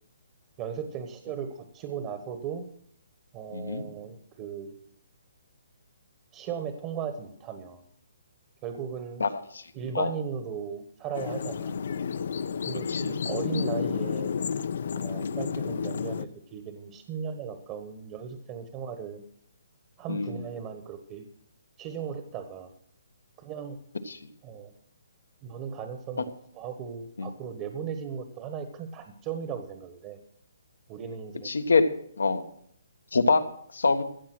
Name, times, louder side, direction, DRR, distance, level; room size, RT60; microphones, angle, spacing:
voice 1, 0.6-2.6 3.3-4.8 6.3-7.8 8.6-9.3 9.7-11.7 12.7-14.3 14.9-19.2 20.0-21.3 21.8-22.7 23.4-23.8 24.4-24.7 25.4-30.2 30.9-31.5, right 7 dB, 25° right, 7 dB, 1.3 m, -37 dB
voice 2, 3.5-3.9 9.2-9.6 9.9-10.1 12.9-13.1 15.2-15.4 20.1-20.4 24.1-24.2 27.2-27.3 31.4-31.9 32.2-32.4 33.1-33.4 33.7-34.0, left 4 dB, 90° left, 8 dB, 1.4 m, -25 dB
sound 1, 11.1-16.3, left 6 dB, 60° left, 0.6 m, -31 dB
15.5 x 7.4 x 6.1 m, 0.66 s
hypercardioid pair, 155°, 0 cm